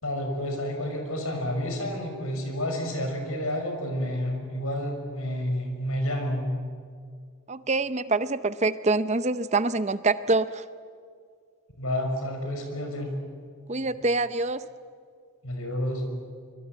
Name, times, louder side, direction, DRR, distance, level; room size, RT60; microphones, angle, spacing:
voice 1, 0.0-6.4 11.8-13.1 13.8-13.9 15.4-16.0, equal, 75° left, 4 dB, 6.3 m, -30 dB
voice 2, 7.5-10.6 13.7-14.6, right 3 dB, 30° right, 13 dB, 0.7 m, -25 dB
25.0 x 24.0 x 9.0 m, 2.1 s
head